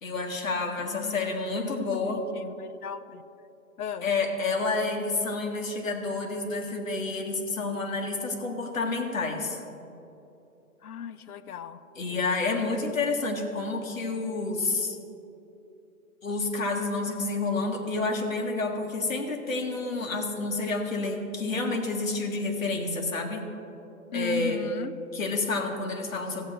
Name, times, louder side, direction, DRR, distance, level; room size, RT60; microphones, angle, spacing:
voice 1, 0.0-2.2 4.0-9.6 11.9-15.0 16.2-23.5 24.1-24.6 25.1-26.5, left 3 dB, 65° left, 2 dB, 1.6 m, -29 dB
voice 2, 0.8-3.2 3.8-4.1 10.8-11.8 24.1-24.9, left 7 dB, 85° left, 11 dB, 0.7 m, -37 dB
15.0 x 8.9 x 3.3 m, 2.9 s
hypercardioid pair, 175°, 43 cm